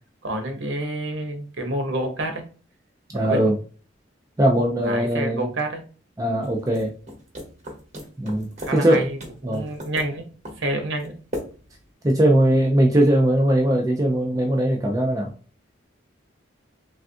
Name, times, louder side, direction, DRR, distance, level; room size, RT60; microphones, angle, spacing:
voice 1, 0.2-2.4 3.2-3.4 4.8-5.8 8.6-9.2 9.4-10.3 10.6-11.1, right 1 dB, 60° right, 5 dB, 0.7 m, -28 dB
voice 2, 3.1-3.5 4.4-5.5 6.2-6.9 8.2-9.1 9.4-9.7 12.0-15.3, right 1 dB, 15° right, 0 dB, 0.4 m, -20 dB
sound 1, 6.4-11.9, equal, 35° right, 1.0 m, -39 dB
3.3 x 2.4 x 2.5 m, 0.38 s
head